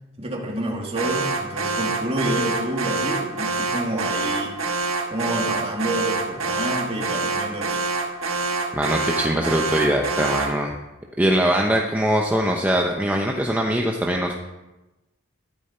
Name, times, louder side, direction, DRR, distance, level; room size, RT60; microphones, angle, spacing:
voice 1, 0.2-4.6 5.1-7.8, right 1 dB, 30° right, 0 dB, 2.4 m, -28 dB
Alarm, 1.0-10.6, right 3 dB, 90° right, 1.5 m, -26 dB
voice 2, 8.7-10.7 11.2-14.3, right 1 dB, 10° right, 0 dB, 0.9 m, -22 dB
13.5 x 12.0 x 4.4 m, 1.1 s
head